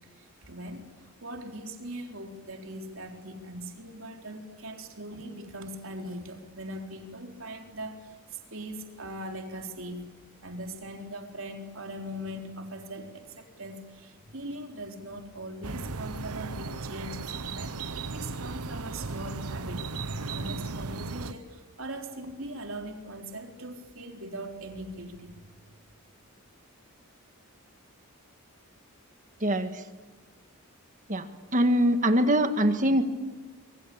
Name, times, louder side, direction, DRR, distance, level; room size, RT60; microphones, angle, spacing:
voice 1, 0.2-10.1 10.4-25.4, right 1 dB, 60° right, 4 dB, 4.0 m, -40 dB
sound 1, 15.6-21.3, right 3 dB, 90° right, 1.1 m, -36 dB
voice 2, 29.4-29.8 31.1-31.2 31.5-33.0, equal, 35° right, 8 dB, 1.7 m, -23 dB
26.5 x 24.0 x 8.7 m, 1.3 s
head